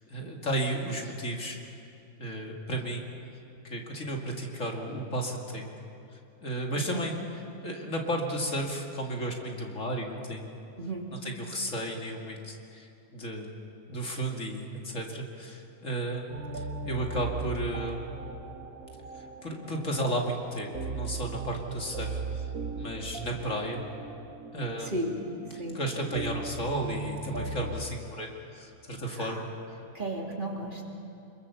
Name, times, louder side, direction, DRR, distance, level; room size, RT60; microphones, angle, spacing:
voice 1, 0.1-1.6 2.2-3.0 3.6-5.7 6.1-7.1 7.6-10.5 11.1-13.5 13.9-18.0 19.1-22.5 22.8-23.8 24.5-24.9 25.5-29.8, right 1 dB, 60° left, 1 dB, 2.7 m, -33 dB
voice 2, 10.8-11.1 24.8-25.1 25.6-25.8 29.2-29.4 29.9-30.8, right 1 dB, 35° right, -1 dB, 3.0 m, -34 dB
sound 1, 16.3-27.9, right 3 dB, 85° right, 1.8 m, -38 dB
26.5 x 22.5 x 7.0 m, 2.7 s
omnidirectional pair, 1.5 m